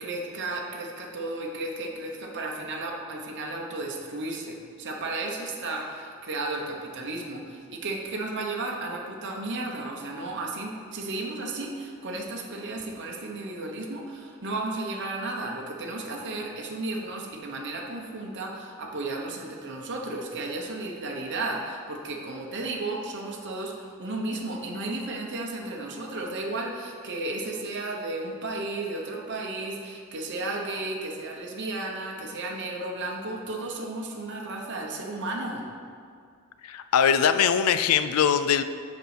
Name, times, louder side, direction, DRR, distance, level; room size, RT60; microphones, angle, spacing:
voice 1, 0.0-35.7, right 2 dB, 55° right, 0 dB, 1.0 m, -34 dB
voice 2, 36.6-38.6, left 8 dB, 85° left, 11 dB, 0.4 m, -22 dB
6.6 x 5.3 x 6.1 m, 2.3 s
head